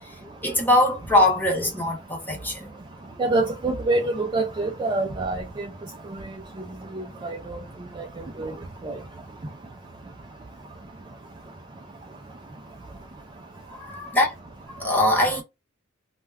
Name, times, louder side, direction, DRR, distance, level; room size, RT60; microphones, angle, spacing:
voice 1, 0.0-2.8 3.1-3.2 13.7-14.3 14.7-15.4, left 1 dB, 10° left, 1.0 m, -23 dB
voice 2, 3.2-5.7 6.2-6.3 6.9-7.6 8.0-8.5 8.8-9.0, right 2 dB, 20° right, 0.3 m, -26 dB
2.2 x 2.1 x 3.3 m
head